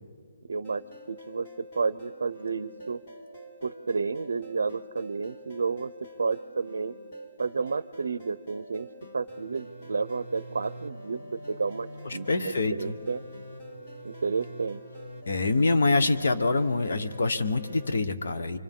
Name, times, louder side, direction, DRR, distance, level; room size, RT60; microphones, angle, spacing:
voice 1, 0.5-0.8 1.1-3.0 3.6-5.9 6.2-6.9 7.4-8.9 9.1-11.2 11.5-13.2 14.0-14.8, right 4 dB, 75° right, 15 dB, 0.5 m, -31 dB
sound 1, 0.6-17.9, equal, 35° left, 2.6 m, -45 dB
voice 2, 12.0-12.9 15.3-18.6, left 3 dB, 65° left, 8 dB, 1.2 m, -25 dB
28.5 x 24.5 x 3.7 m, 2.2 s
hypercardioid pair, 170°, 0 cm